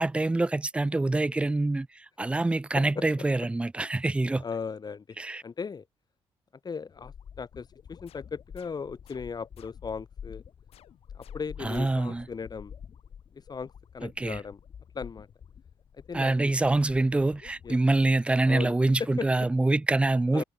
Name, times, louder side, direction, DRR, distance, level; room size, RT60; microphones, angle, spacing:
voice 1, 0.0-4.4 5.2-5.4 11.6-12.3 14.0-14.4 16.1-20.4, right 2 dB, 10° right, 0.3 m, -25 dB
voice 2, 4.4-5.2 5.4-5.8 6.6-10.4 11.1-12.7 13.3-14.6 14.9-15.3 15.9-16.5 17.6-17.7 18.4-19.3 20.3-20.4, left 5 dB, 40° left, 2.3 m, -37 dB
sound 1, 6.9-17.7, left 8 dB, 60° left, 2.6 m, -48 dB
sound 2, 8.1-10.1 10.7-12.3, left 12 dB, 80° left, 7.5 m, -60 dB
supercardioid pair, 65°, 10 cm